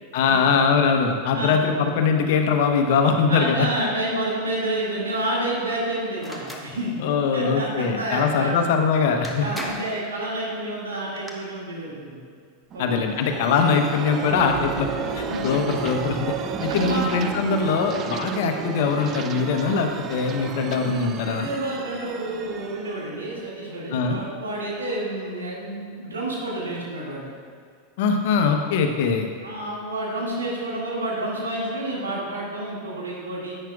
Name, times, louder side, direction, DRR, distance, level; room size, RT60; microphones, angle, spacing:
voice 1, 0.1-3.7 7.0-9.5 12.8-14.9 15.1-16.3 16.6-21.5 23.9-24.2 28.0-29.3, left 5 dB, 60° left, 5 dB, 0.9 m, -22 dB
voice 2, 2.8-7.0 7.3-8.6 9.4-12.2 12.7-13.0 15.3-15.4 16.5-17.1 18.2-18.3 21.3-27.3 29.4-33.5, right 1 dB, 80° right, -4 dB, 2.1 m, -29 dB
sound 1, 6.2-6.7 8.8-8.9 9.2-10.0 10.9-11.3, right 1 dB, 5° right, 1.0 m, -36 dB
sound 2, 12.7-24.2, right 7 dB, 35° right, 0.5 m, -33 dB
sound 3, 14.8-17.5, left 2 dB, 90° left, 0.3 m, -37 dB
10.5 x 8.8 x 2.4 m, 2.1 s
figure-of-eight pair, 90°, 0 cm